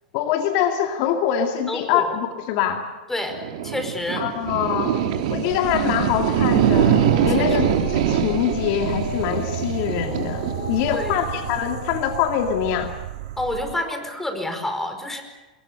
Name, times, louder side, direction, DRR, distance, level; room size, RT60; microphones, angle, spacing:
voice 1, 0.1-2.9 4.2-5.0 5.3-12.9, left 9 dB, 50° left, 5 dB, 2.3 m, -24 dB
voice 2, 1.7-2.1 3.1-3.4 3.6-4.2 7.6-7.7 10.9-11.2 13.4-15.2, left 1 dB, 5° left, 6 dB, 5.0 m, -28 dB
sound 1, 3.3-13.7, right 9 dB, 60° right, 3.2 m, -24 dB
sound 2, 5.4-12.8, left 4 dB, 90° left, 2.2 m, -36 dB
27.5 x 22.0 x 6.9 m, 1.2 s
hypercardioid pair, 105°, 4 cm